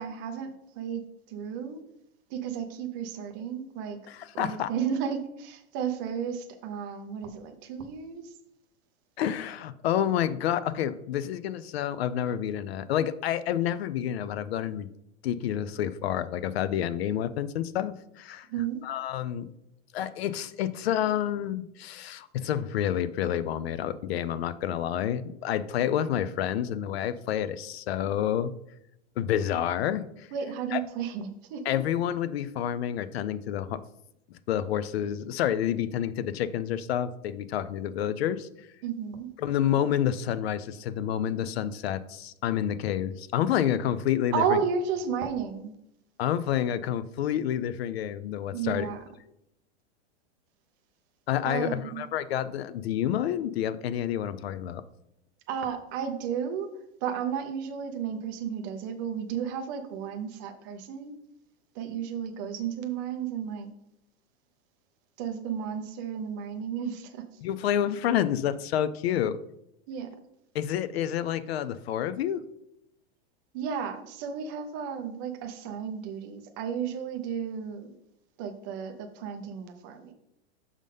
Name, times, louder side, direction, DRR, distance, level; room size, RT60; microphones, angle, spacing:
voice 1, 0.0-1.8 2.3-4.0 4.3-8.3 18.5-18.8 30.3-31.8 38.8-39.3 44.3-45.7 48.5-49.0 51.4-52.0 55.5-56.7 57.0-61.1 61.7-63.7 65.2-67.2 69.9-70.1 73.5-77.9 78.4-80.1, right 7 dB, 20° right, 5 dB, 0.4 m, -33 dB
voice 2, 4.1-4.7 9.2-14.9 15.2-18.5 18.8-19.5 19.9-28.5 29.2-30.3 30.7-30.8 31.7-33.8 34.5-38.5 39.4-44.6 46.2-48.9 51.3-54.8 67.4-69.4 70.5-72.4, left 10 dB, 65° left, 15 dB, 0.5 m, -29 dB
6.5 x 3.7 x 5.3 m, 0.80 s
supercardioid pair, 175°, 33 cm